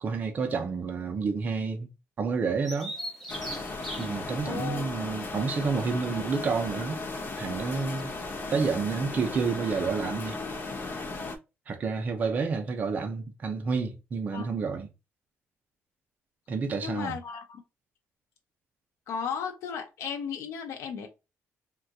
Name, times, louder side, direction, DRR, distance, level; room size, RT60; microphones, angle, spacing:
voice 1, 0.0-1.9 2.2-2.9 4.0-7.0 7.4-8.1 8.5-10.4 11.7-14.9 16.5-17.2, right 5 dB, 35° right, 0.6 m, -29 dB
Bird vocalization bird call bird song, 2.7-8.3, equal, ahead, 0.8 m, -43 dB
sound 1, 3.3-11.4, left 3 dB, 45° left, 0.8 m, -36 dB
voice 2, 4.4-4.9 14.3-14.4 16.8-17.4 19.1-21.1, left 7 dB, 85° left, 0.6 m, -35 dB
3.7 x 2.4 x 2.8 m
cardioid pair, 160°, 5 cm